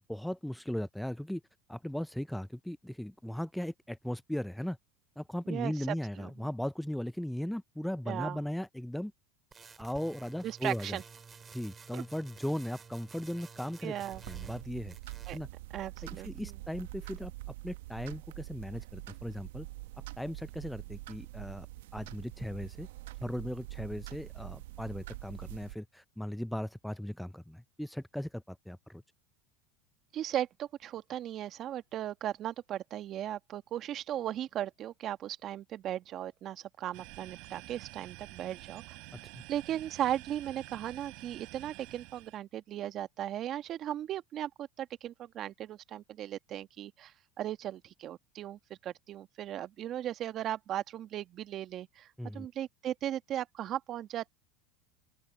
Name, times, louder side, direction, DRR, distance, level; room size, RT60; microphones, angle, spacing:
voice 1, 0.1-1.4 1.7-4.8 5.2-9.1 9.8-11.0 11.5-13.9 14.3-15.0 15.3-15.5 16.2-17.3 17.6-19.7 20.2-21.7 21.9-22.9 23.2-29.0 39.3-39.4 52.2-52.5, equal, ahead, 0.4 m, -37 dB
voice 2, 5.5-6.5 8.1-8.4 10.4-11.0 11.9-12.0 13.8-14.2 15.3-15.4 15.7-16.6 30.1-39.0 39.5-54.3, right 11 dB, 45° right, 1.5 m, -37 dB
sound 1, 9.5-14.6 14.9-15.5, right 6 dB, 25° right, 6.0 m, -52 dB
sound 2, 14.1-25.7, right 18 dB, 80° right, 0.9 m, -45 dB
sound 3, 36.9-42.4, right 28 dB, 65° right, 4.6 m, -49 dB
open air
supercardioid pair, 110°, 0 cm